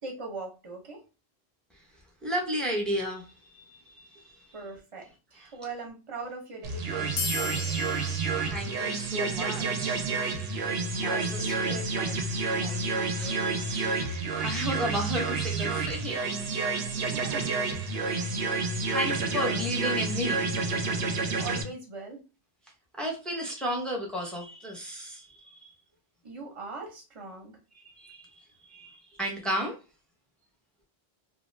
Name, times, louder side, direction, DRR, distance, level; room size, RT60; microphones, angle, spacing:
voice 1, 0.0-1.0 4.5-7.8 11.1-12.2 12.6-13.4 17.1-17.6 19.3-19.6 21.4-22.2 26.2-27.6, right 3 dB, 35° right, 0.8 m, -41 dB
voice 2, 2.2-4.6 8.5-10.1 11.0-11.8 13.1-17.3 18.0-18.4 18.9-20.5 22.9-25.7 27.7-29.8, equal, ahead, 0.6 m, -34 dB
sound 1, 6.6-21.6, right 4 dB, 80° right, 0.8 m, -29 dB
sound 2, 7.2-10.2, left 5 dB, 90° left, 0.9 m, -38 dB
2.4 x 2.2 x 3.1 m
omnidirectional pair, 1.0 m